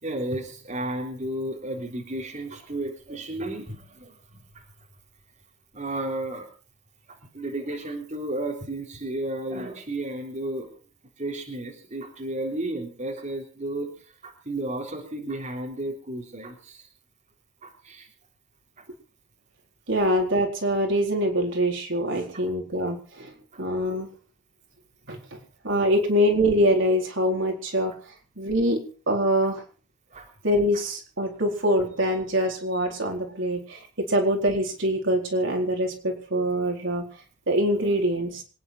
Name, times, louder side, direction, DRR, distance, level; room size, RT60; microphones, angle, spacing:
voice 1, 0.0-4.6 5.7-6.5 7.1-10.7 11.2-13.9 14.2-16.9 17.6-18.1 18.8-18.9 22.3-22.4 23.5-23.6 25.1-25.2 30.1-30.3 30.7-30.8 37.8-37.9, right 1 dB, 35° right, -1 dB, 3.7 m, -33 dB
voice 2, 19.9-23.3 23.6-24.1 25.1-25.2 25.6-27.9 28.4-28.8 29.1-29.6 30.4-37.1 37.5-38.4, equal, 60° right, 1 dB, 4.2 m, -24 dB
26.0 x 10.0 x 4.5 m, 0.38 s
head